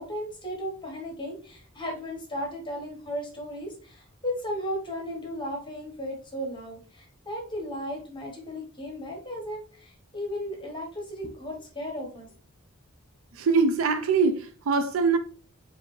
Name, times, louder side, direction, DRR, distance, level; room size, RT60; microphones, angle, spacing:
voice 1, 0.0-12.3, equal, 25° left, 1.0 m, -35 dB
voice 2, 13.3-15.2, right 4 dB, 75° right, 0.4 m, -23 dB
4.8 x 2.6 x 3.1 m
head